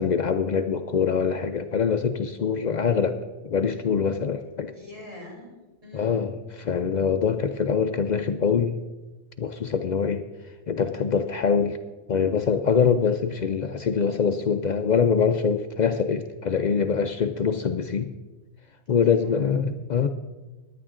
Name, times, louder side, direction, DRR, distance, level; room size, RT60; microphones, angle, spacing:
voice 1, 0.0-3.2 3.4-4.7 5.9-8.7 9.4-10.2 10.7-11.8 12.1-18.1 18.9-20.1, left 6 dB, 90° left, 8 dB, 0.4 m, -24 dB
voice 2, 4.7-6.4 19.0-19.6, left 1 dB, 25° right, -1 dB, 3.4 m, -44 dB
16.0 x 10.5 x 3.7 m, 1.2 s
omnidirectional pair, 1.4 m